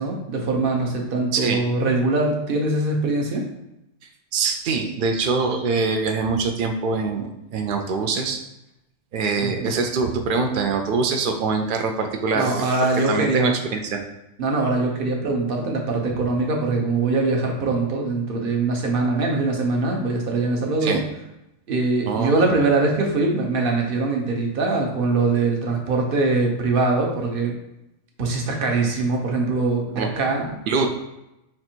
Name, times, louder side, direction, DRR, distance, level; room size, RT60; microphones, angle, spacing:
voice 1, 0.0-3.4 9.4-9.7 12.3-13.6 14.4-21.0 21.7-27.5 28.2-30.6, right 3 dB, 50° right, 1 dB, 0.9 m, -22 dB
voice 2, 4.3-8.4 9.1-12.6 13.1-14.0 20.8-21.0 22.1-22.3 30.0-30.1 30.7-30.9, right 4 dB, 80° right, 4 dB, 0.4 m, -24 dB
4.3 x 2.6 x 4.3 m, 0.89 s
omnidirectional pair, 1.4 m